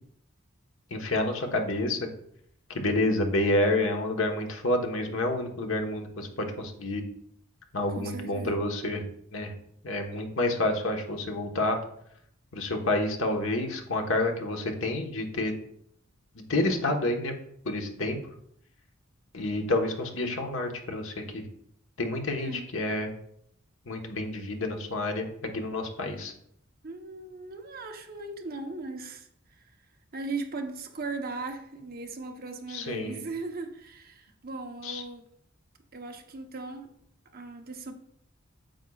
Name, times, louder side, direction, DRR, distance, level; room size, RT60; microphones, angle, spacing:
voice 1, 0.9-2.0 2.7-7.0 7.7-9.0 9.3-9.5 9.8-11.8 12.5-15.5 16.3-17.3 17.6-18.2 19.3-21.5 22.0-23.1 23.9-26.3 32.7-33.2 34.8-35.0, left 2 dB, 70° left, 1.3 m, -29 dB
voice 2, 7.9-8.7 22.3-22.7 26.8-29.6 30.1-35.2 35.9-36.9 37.3-37.9, right 3 dB, 50° right, 0.9 m, -38 dB
9.1 x 8.0 x 2.4 m
head